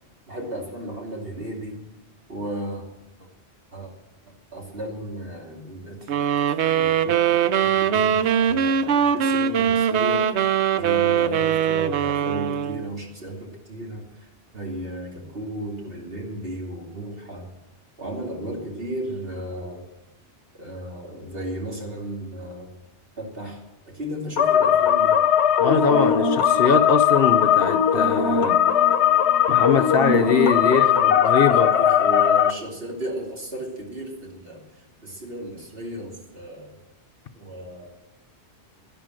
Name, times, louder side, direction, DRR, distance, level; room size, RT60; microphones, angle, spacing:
voice 1, 0.3-1.8 2.3-2.9 3.2-3.3 3.7-3.9 4.5-6.1 6.8-10.3 10.7-17.5 18.0-19.9 20.5-22.7 23.2-25.2 30.6-36.8 37.3-37.9, right 1 dB, 60° right, 2.9 m, -34 dB
sound 1, 6.1-12.9, right 8 dB, 90° right, 1.0 m, -21 dB
sound 2, 24.4-32.5, left 8 dB, 85° left, 1.1 m, -19 dB
voice 2, 25.6-28.6 29.5-30.8 31.2-31.7, left 5 dB, 65° left, 1.0 m, -22 dB
11.5 x 10.5 x 7.6 m
omnidirectional pair, 1.1 m